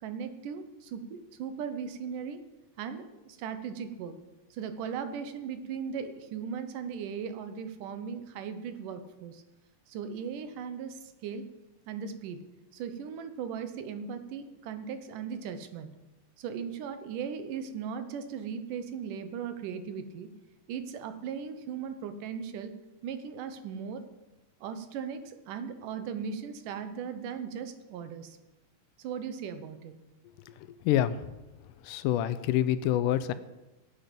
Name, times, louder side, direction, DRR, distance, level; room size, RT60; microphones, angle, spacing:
voice 1, 0.0-2.4 2.8-4.2 4.5-9.4 9.9-11.4 11.9-12.4 12.7-15.9 16.4-20.3 20.7-22.7 23.0-24.0 24.6-28.4 29.0-29.9, right 7 dB, 80° right, 9 dB, 2.5 m, -38 dB
voice 2, 30.5-31.4 31.6-33.3, left 11 dB, 85° left, 13 dB, 2.2 m, -28 dB
16.0 x 9.1 x 5.3 m, 1.1 s
omnidirectional pair, 3.7 m